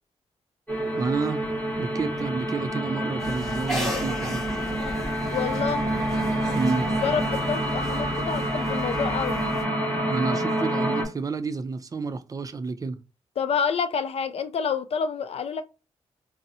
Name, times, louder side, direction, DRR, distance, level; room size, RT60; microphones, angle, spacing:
sound 1, 0.7-11.0, right 1 dB, 15° left, 1.5 m, -28 dB
voice 1, 1.0-1.5 1.8-4.4 6.5-6.9 10.1-13.0, right 4 dB, 30° right, 0.4 m, -29 dB
sound 2, 3.2-9.6, equal, ahead, 1.9 m, -35 dB
voice 2, 5.3-5.8 7.0-9.3 13.4-15.6, left 6 dB, 60° left, 0.5 m, -28 dB
3.9 x 2.0 x 2.7 m
cardioid pair, 100°, 12 cm